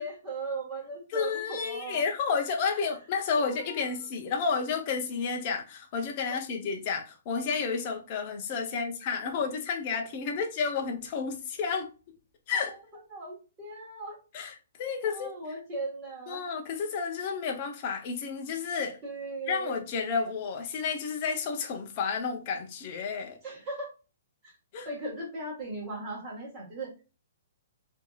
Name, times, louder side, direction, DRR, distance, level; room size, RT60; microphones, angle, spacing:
voice 1, 0.0-2.0 3.4-3.9 12.5-12.8 13.1-14.2 15.0-16.4 19.0-19.8 23.4-23.9 24.4-24.5 24.8-26.9, right 2 dB, 15° right, 1.3 m, -38 dB
voice 2, 1.1-11.9 12.5-12.8 14.3-15.3 16.3-19.0 19.5-23.4 24.7-24.9, left 5 dB, 25° left, 0.5 m, -31 dB
4.5 x 2.6 x 2.3 m
hypercardioid pair, 180°, 0 cm